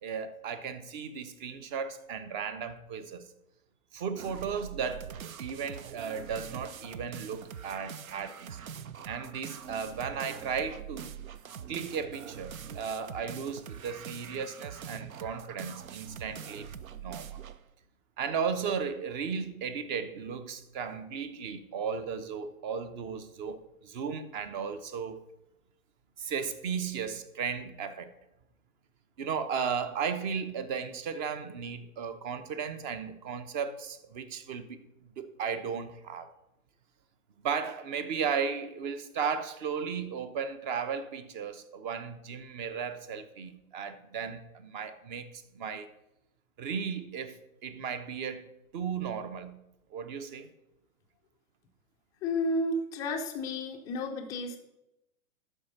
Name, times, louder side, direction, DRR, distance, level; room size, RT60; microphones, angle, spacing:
voice 1, 0.0-3.3 3.9-8.6 9.1-11.1 11.7-16.7 17.0-17.4 18.2-25.2 26.2-28.1 29.2-34.8 35.2-36.3 37.4-45.9 46.6-48.5 48.7-49.6 49.9-50.5, right 6 dB, 30° right, 0.8 m, -35 dB
sound 1, 4.2-17.6, right 8 dB, 70° right, 0.6 m, -44 dB
voice 2, 52.2-54.6, left 1 dB, 10° left, 0.4 m, -32 dB
11.5 x 4.6 x 5.3 m
figure-of-eight pair, 110°, 43 cm